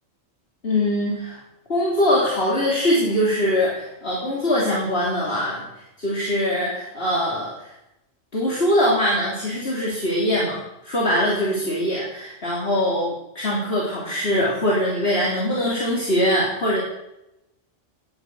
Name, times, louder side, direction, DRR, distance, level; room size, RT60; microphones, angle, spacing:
voice 1, 0.6-1.4 1.7-5.6 6.0-7.7 8.3-16.8, left 1 dB, 50° left, -5 dB, 3.8 m, -22 dB
19.5 x 10.5 x 6.3 m, 0.88 s
omnidirectional pair, 1.3 m